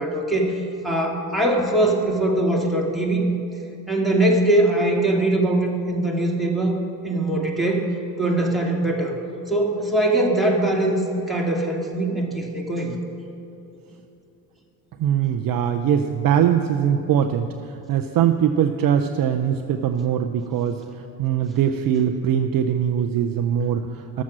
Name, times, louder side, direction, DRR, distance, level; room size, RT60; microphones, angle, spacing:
voice 1, 0.0-3.2 3.9-6.8 7.0-7.9 8.2-9.2 9.5-12.9, right 1 dB, ahead, -2 dB, 2.2 m, -22 dB
voice 2, 15.0-20.8 21.2-24.2, right 9 dB, 45° right, 7 dB, 0.6 m, -22 dB
12.5 x 7.2 x 6.3 m, 2.7 s
hypercardioid pair, 60°, 50 cm